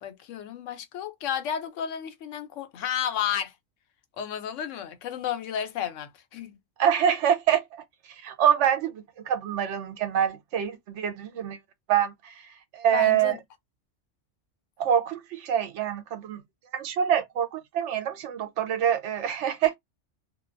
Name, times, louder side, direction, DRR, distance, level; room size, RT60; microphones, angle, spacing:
voice 1, 0.0-3.5 4.2-6.6 12.9-13.4, left 9 dB, 85° left, 1.0 m, -32 dB
voice 2, 6.8-7.8 8.2-11.6 11.9-12.3 12.7-13.3 14.8-16.4 16.7-19.7, right 9 dB, 75° right, 0.9 m, -25 dB
2.5 x 2.2 x 2.4 m
omnidirectional pair, 1.2 m